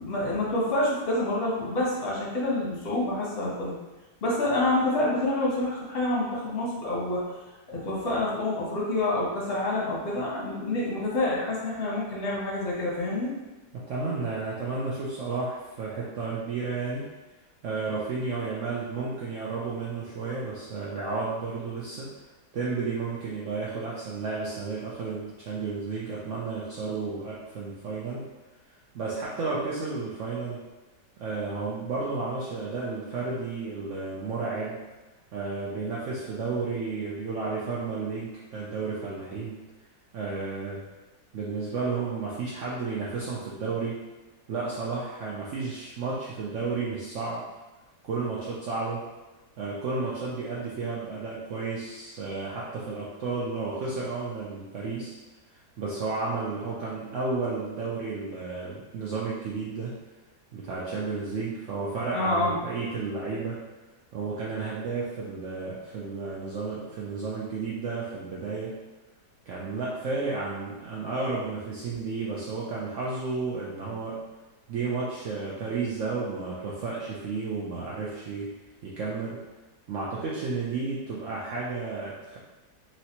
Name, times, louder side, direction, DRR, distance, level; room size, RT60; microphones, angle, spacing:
voice 1, 0.0-3.8 4.2-7.2 7.7-13.3 62.1-62.6, left 1 dB, 45° left, -5 dB, 0.9 m, -27 dB
voice 2, 13.7-17.1 17.6-22.1 22.5-28.2 28.7-30.6 31.2-34.8 35.3-39.6 40.1-40.8 41.3-44.0 44.5-47.4 48.0-49.0 49.6-55.1 55.5-60.0 60.5-63.6 64.1-68.8 69.5-74.2 74.7-78.5 78.8-79.4 79.9-82.4, right 4 dB, 80° right, -6 dB, 0.6 m, -32 dB
3.1 x 2.8 x 2.8 m, 1.1 s
omnidirectional pair, 1.9 m